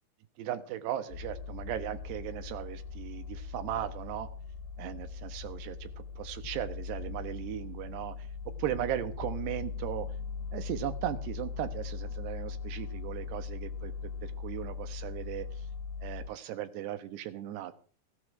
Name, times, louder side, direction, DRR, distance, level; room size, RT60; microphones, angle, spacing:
voice 1, 0.4-4.3 4.8-8.1 8.6-10.1 10.5-15.5 16.0-17.7, right 12 dB, 70° right, 10 dB, 3.2 m, -37 dB
sound 1, 1.1-16.3, left 5 dB, 80° left, 3.4 m, -40 dB
15.0 x 13.5 x 4.9 m, 0.41 s
omnidirectional pair, 5.3 m